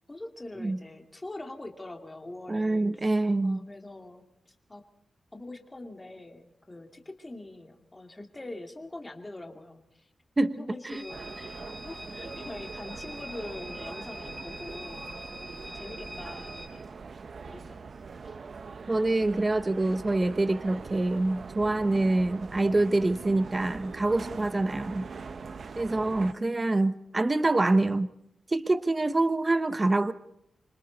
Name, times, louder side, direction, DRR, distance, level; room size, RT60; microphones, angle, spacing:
voice 1, 0.1-3.1 3.4-4.8 5.3-10.1 10.6-15.3 15.6-16.9 17.5-17.9 18.2-18.4 18.8-19.1 26.2-26.8, left 2 dB, 15° left, 4 dB, 2.6 m, -44 dB
voice 2, 2.5-3.6 10.4-11.0 18.9-25.0 25.7-28.1 28.5-30.1, right 2 dB, 20° right, 11 dB, 1.0 m, -26 dB
sound 1, 10.9-16.7, equal, 5° right, 5.2 m, -44 dB
sound 2, 11.1-26.3, right 5 dB, 50° right, 0.9 m, -42 dB
28.0 x 25.0 x 4.1 m, 0.75 s
wide cardioid pair, 140°, 0 cm